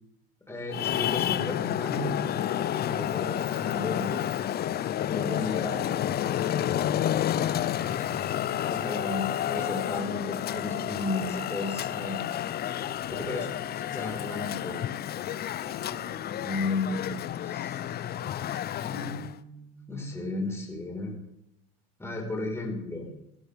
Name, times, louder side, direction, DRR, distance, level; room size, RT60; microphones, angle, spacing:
voice 1, 0.5-4.2 5.1-5.7 7.9-8.3 8.7-12.2 13.1-13.4 13.9-14.8 16.2-17.0 17.4-17.9 18.8-21.2 22.0-23.1, left 2 dB, 10° left, -1 dB, 4.8 m, -34 dB
Traffic noise roadway noise, 0.7-19.4, left 11 dB, 30° left, 0.6 m, -30 dB
voice 2, 5.2-6.1 7.4-9.0 12.9-14.1 15.6-16.2, left 6 dB, 55° left, -1 dB, 4.2 m, -44 dB
18.0 x 14.0 x 3.6 m, 0.82 s
supercardioid pair, 105°, 30 cm